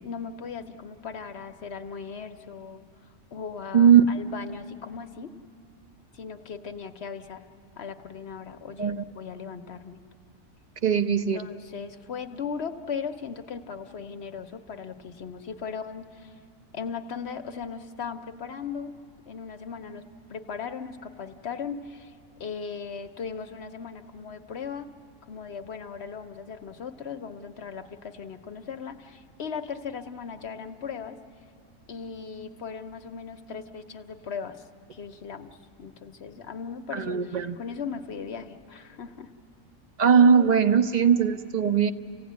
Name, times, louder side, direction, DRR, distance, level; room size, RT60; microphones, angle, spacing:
voice 1, 0.0-2.9 3.3-5.3 6.1-7.5 7.8-10.0 11.3-16.4 16.7-19.0 19.3-22.1 22.4-24.9 25.3-31.2 31.9-34.6 34.9-39.3, left 6 dB, 55° left, 8 dB, 1.0 m, -38 dB
voice 2, 3.7-4.0 8.8-9.0 10.8-11.4 36.9-37.6 40.0-41.9, right 7 dB, 45° right, 9 dB, 0.5 m, -19 dB
29.5 x 16.5 x 9.4 m, 2.6 s
omnidirectional pair, 1.4 m